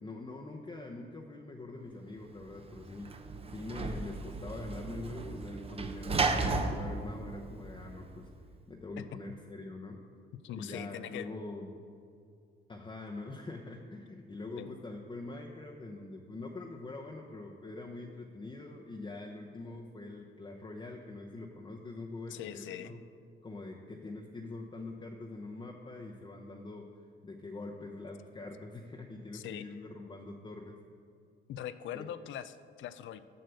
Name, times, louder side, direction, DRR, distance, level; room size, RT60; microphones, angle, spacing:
voice 1, 0.0-3.1 3.5-8.3 8.7-10.0 10.5-11.8 12.7-23.0 23.4-26.9 27.2-30.8 31.9-32.0, left 2 dB, 25° left, 0 dB, 0.8 m, -44 dB
Sliding door / Slam, 2.4-8.3, right 3 dB, 30° right, 0.7 m, -35 dB
voice 2, 10.4-11.3 14.6-14.8 22.3-22.9 29.3-29.7 31.5-33.2, left 11 dB, 75° left, 13 dB, 0.5 m, -41 dB
7.8 x 6.5 x 6.8 m, 2.4 s
cardioid pair, 90°, 20 cm